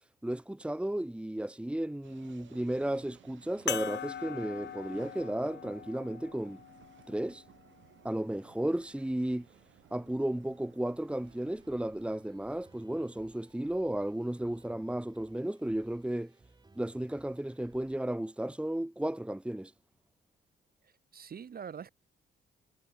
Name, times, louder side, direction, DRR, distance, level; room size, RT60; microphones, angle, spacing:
voice 1, 0.2-6.6 7.1-7.4 8.0-9.5 9.9-16.3 16.8-19.7, right 1 dB, 5° right, 1.8 m, -34 dB
sound 1, 2.0-12.9, right 11 dB, 70° right, 6.3 m, -60 dB
sound 2, 3.7-8.5 9.3-9.4 11.5-11.6, left 9 dB, 60° left, 3.2 m, -42 dB
sound 3, 11.2-18.0, right 3 dB, 20° right, 7.1 m, -62 dB
voice 2, 20.8-21.9, right 7 dB, 50° right, 3.9 m, -44 dB
cardioid pair, 90°, 20 cm